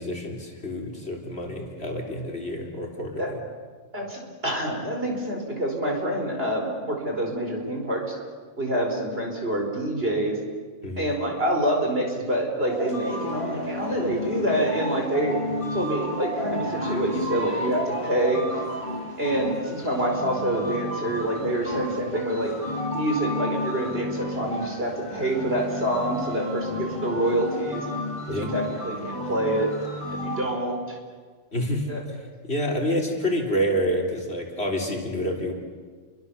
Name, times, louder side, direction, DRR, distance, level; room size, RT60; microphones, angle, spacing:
voice 1, 0.0-3.4 10.8-11.1 28.3-28.5 31.5-35.5, equal, 50° left, 0 dB, 4.0 m, -28 dB
voice 2, 3.9-8.1 8.6-10.4 11.0-15.3 15.7-18.4 19.2-22.5 22.9-27.9 28.3-29.7 30.2-31.0 31.9-32.0, right 1 dB, 50° right, 1 dB, 5.3 m, -26 dB
sound 1, 12.7-30.5, left 1 dB, 25° left, 5.7 m, -32 dB
29.5 x 24.0 x 7.1 m, 1.5 s
omnidirectional pair, 1.3 m